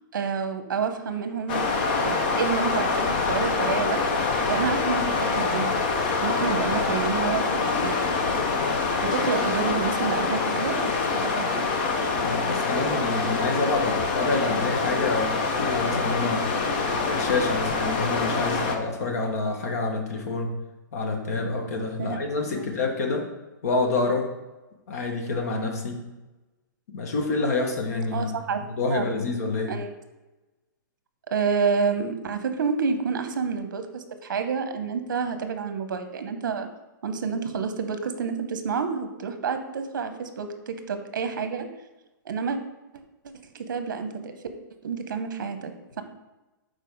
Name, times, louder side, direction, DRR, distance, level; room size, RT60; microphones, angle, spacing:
voice 1, 0.1-1.7 2.0-4.0 4.5-5.7 6.2-8.2 9.0-10.9 11.2-11.7 22.0-22.2 22.6-22.7 28.1-28.6 28.9-29.1 29.7-29.9 31.3-36.7 37.0-41.7 42.2-42.6 43.5-44.4 44.8-46.0, right 5 dB, 65° right, 8 dB, 0.9 m, -29 dB
sound 1, 1.5-18.8, left 4 dB, 30° left, 0.6 m, -25 dB
voice 2, 12.2-16.5 17.0-20.5 20.9-23.2 23.6-24.3 24.9-26.0 26.9-28.4 28.7-29.7, left 3 dB, 45° left, 2 dB, 1.3 m, -27 dB
6.8 x 4.5 x 4.7 m, 1.1 s
hypercardioid pair, 180°, 11 cm